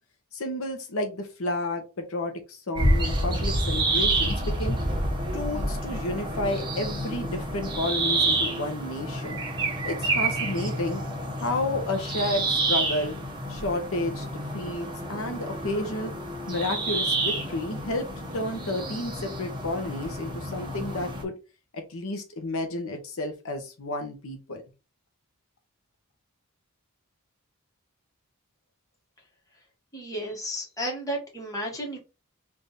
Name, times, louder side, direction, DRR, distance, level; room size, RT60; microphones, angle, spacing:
voice 1, 0.3-4.8 5.3-9.4 9.8-11.0 11.4-13.2 13.5-14.2 14.5-16.1 16.5-18.1 18.3-21.4 21.7-24.6, left 2 dB, 70° left, 5 dB, 0.8 m, -31 dB
sound 1, 2.8-21.2, right 2 dB, 20° right, 0.9 m, -29 dB
voice 2, 29.9-32.0, equal, 15° left, -1 dB, 1.4 m, -33 dB
3.5 x 2.6 x 3.9 m, 0.29 s
head